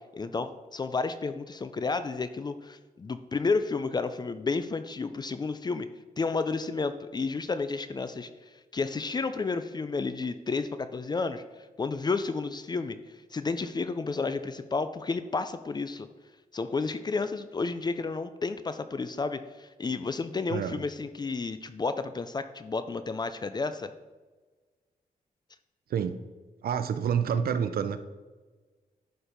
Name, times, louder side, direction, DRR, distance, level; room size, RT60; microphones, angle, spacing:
voice 1, 0.1-5.9 6.2-11.4 11.8-16.1 16.5-23.9, left 4 dB, 30° left, 11 dB, 0.4 m, -31 dB
voice 2, 20.5-20.8 25.9-26.2 26.6-28.0, right 7 dB, 85° right, 10 dB, 0.6 m, -28 dB
11.0 x 4.5 x 5.1 m, 1.3 s
wide cardioid pair, 145°, 15 cm